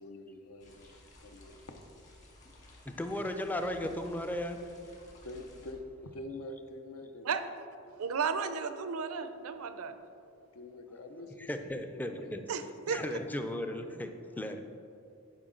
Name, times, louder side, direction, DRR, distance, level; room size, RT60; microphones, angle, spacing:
voice 1, 0.0-1.6 5.2-7.4 10.5-12.6 13.8-13.9 14.2-14.5, left 2 dB, 75° left, 6 dB, 0.7 m, -46 dB
sound 1, 0.6-5.7, left 1 dB, 35° left, 1.4 m, -56 dB
voice 2, 2.9-4.7 11.5-12.4 12.9-14.1 14.4-14.6, left 1 dB, 10° left, 6 dB, 0.4 m, -35 dB
voice 3, 8.0-10.0 12.5-13.0, right 6 dB, 80° right, 10 dB, 0.5 m, -34 dB
11.0 x 4.8 x 3.8 m, 2.5 s
head